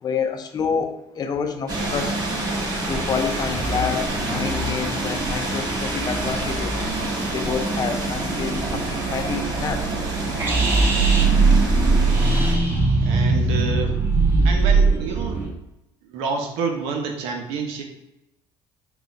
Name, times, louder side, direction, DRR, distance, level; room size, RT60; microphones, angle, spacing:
voice 1, 0.0-2.2 2.8-6.8 7.3-9.9, left 6 dB, 40° left, 6 dB, 0.5 m, -28 dB
sound 1, 1.7-12.5, right 2 dB, 40° right, 1.4 m, -27 dB
sound 2, 10.4-15.5, right 3 dB, 25° right, 1.2 m, -19 dB
voice 2, 13.0-14.0 14.4-15.4 16.0-17.8, right 5 dB, 85° right, 3 dB, 0.8 m, -28 dB
4.0 x 2.4 x 4.1 m, 0.89 s
supercardioid pair, 90°, 10 cm